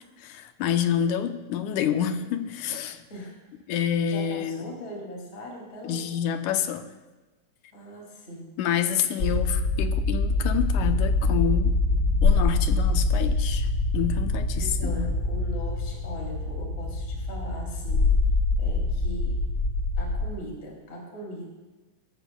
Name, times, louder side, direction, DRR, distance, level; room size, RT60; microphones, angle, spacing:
voice 1, 0.2-3.0 3.7-4.7 5.8-6.9 8.6-11.8 12.2-13.7 13.9-15.1, left 9 dB, 90° left, 8 dB, 2.2 m, -28 dB
voice 2, 4.1-6.1 7.7-8.5 14.5-18.1 18.6-19.4 20.0-21.5, equal, 25° left, -2 dB, 2.5 m, -40 dB
sound 1, 9.2-20.3, left 3 dB, 65° left, 0.7 m, -24 dB
21.5 x 12.5 x 2.2 m, 1.2 s
omnidirectional pair, 3.4 m